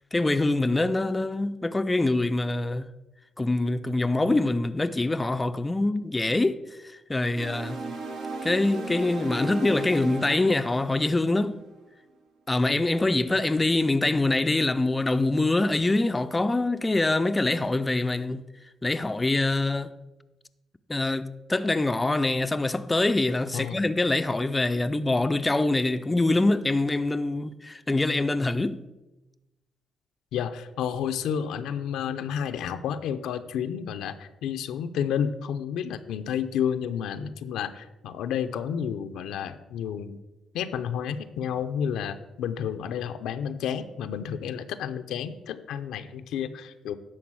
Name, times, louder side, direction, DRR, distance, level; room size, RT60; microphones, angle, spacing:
voice 1, 0.1-2.9 3.4-7.8 8.4-11.6 12.5-18.4 18.8-19.9 20.9-28.9, left 2 dB, 20° left, 0.4 m, -24 dB
sound 1, 7.3-11.7, right 3 dB, 90° right, 2.9 m, -36 dB
voice 2, 30.3-40.2 40.5-47.0, left 8 dB, 85° left, 0.6 m, -31 dB
11.0 x 3.9 x 7.5 m
cardioid pair, 90°, 0 cm